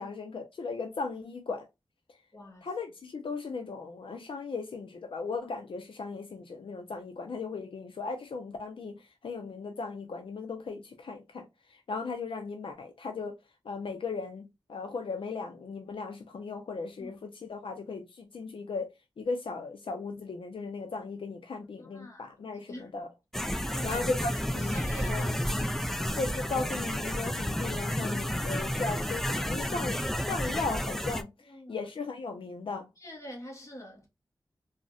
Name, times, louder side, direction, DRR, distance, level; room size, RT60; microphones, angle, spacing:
voice 1, 0.0-1.7 2.6-13.4 13.6-18.9 19.2-23.1 23.6-24.7 25.1-25.3 26.2-32.9, left 4 dB, 80° left, 0.4 m, -37 dB
voice 2, 2.3-2.7 17.0-17.2 21.8-22.3 22.7-22.9 23.7-25.8 31.5-31.8 33.0-34.1, equal, 35° left, 1.1 m, -45 dB
sound 1, 23.3-31.2, equal, 5° left, 0.3 m, -31 dB
3.8 x 2.1 x 2.3 m
wide cardioid pair, 75°, 9 cm